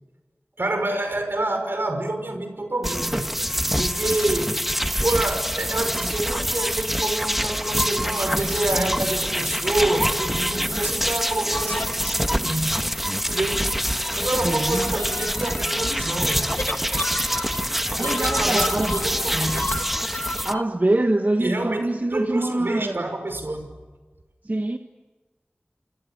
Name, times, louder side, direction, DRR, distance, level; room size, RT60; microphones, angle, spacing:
voice 1, 0.6-3.4 3.8-4.6 5.0-12.8 13.3-13.8 14.1-16.5 18.0-19.7 21.4-23.7, right 2 dB, 80° right, 5.7 m, -27 dB
sound 1, 2.8-20.5, equal, 5° right, 1.3 m, -25 dB
sound 2, 11.5-12.5 13.5-20.6, left 2 dB, 65° left, 1.5 m, -33 dB
voice 2, 14.4-15.0 17.1-17.2 18.0-19.0 20.4-23.1 24.4-24.8, right 2 dB, 50° right, 1.4 m, -24 dB
29.5 x 28.0 x 6.6 m
wide cardioid pair, 40°, 4 cm